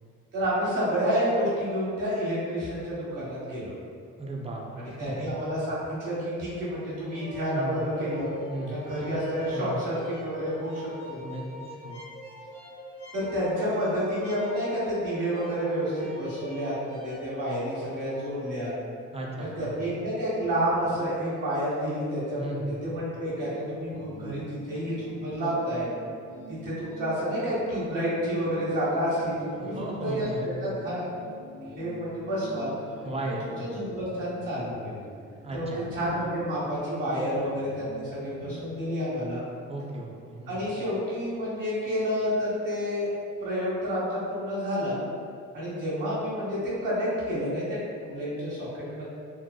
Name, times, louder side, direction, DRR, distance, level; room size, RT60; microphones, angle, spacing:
voice 1, 0.3-3.7 4.8-8.3 8.7-11.2 13.1-18.8 19.4-25.9 26.5-29.7 30.0-31.0 31.8-32.7 33.4-35.0 35.5-39.4 40.5-43.1 43.4-45.0 45.5-49.0, equal, 75° right, -9 dB, 1.1 m, -29 dB
voice 2, 4.2-5.3 7.5-7.8 8.5-8.8 9.5-9.8 11.2-11.4 11.8-12.0 19.1-19.8 22.3-22.9 29.6-30.7 33.0-33.9 35.4-35.9 36.2-36.3 39.7-40.6, right 1 dB, 20° right, -2 dB, 0.5 m, -36 dB
sound 1, 7.0-18.3, left 1 dB, 70° left, 0.9 m, -44 dB
sound 2, 20.5-38.9, left 1 dB, 40° left, 0.7 m, -45 dB
2.8 x 2.0 x 2.2 m, 2.3 s
supercardioid pair, 55°, 33 cm